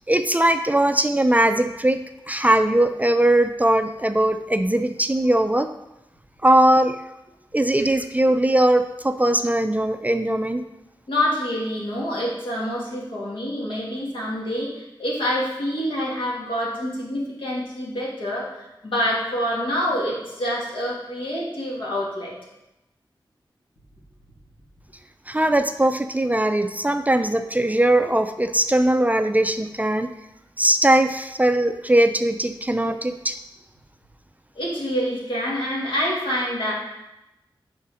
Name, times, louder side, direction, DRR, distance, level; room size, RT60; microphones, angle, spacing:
voice 1, 0.1-2.0 2.3-5.7 6.4-7.0 7.5-10.6 25.3-30.1 30.6-33.4, right 1 dB, 15° right, 8 dB, 0.4 m, -20 dB
voice 2, 11.1-22.3 34.6-36.7, equal, 70° left, -5 dB, 2.1 m, -26 dB
5.5 x 5.1 x 4.8 m, 0.94 s
cardioid pair, 50°, 9 cm